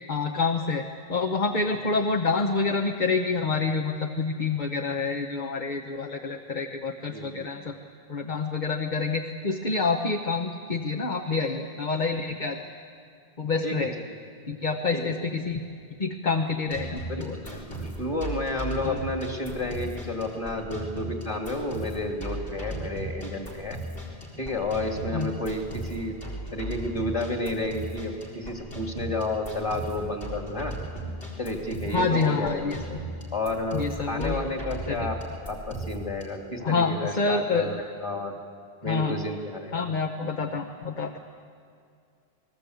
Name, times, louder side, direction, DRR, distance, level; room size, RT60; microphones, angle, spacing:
voice 1, 0.1-0.8 1.1-7.7 8.1-12.7 13.4-13.9 14.5-15.6 16.0-17.4 18.8-19.0 25.1-25.3 31.9-33.0 33.7-34.4 34.9-35.1 36.6-37.7 38.8-39.2 39.7-41.2, left 4 dB, 50° left, 4 dB, 1.2 m, -27 dB
voice 2, 7.1-7.5 13.6-13.8 14.9-15.0 17.0-23.8 24.4-26.2 26.5-30.7 31.4-32.8 33.3-35.2 35.5-38.3 38.8-39.8, left 2 dB, 30° left, 2 dB, 3.0 m, -31 dB
sound 1, 16.7-36.2, right 1 dB, 65° left, 4.4 m, -37 dB
28.0 x 20.0 x 8.2 m, 2.3 s
omnidirectional pair, 1.0 m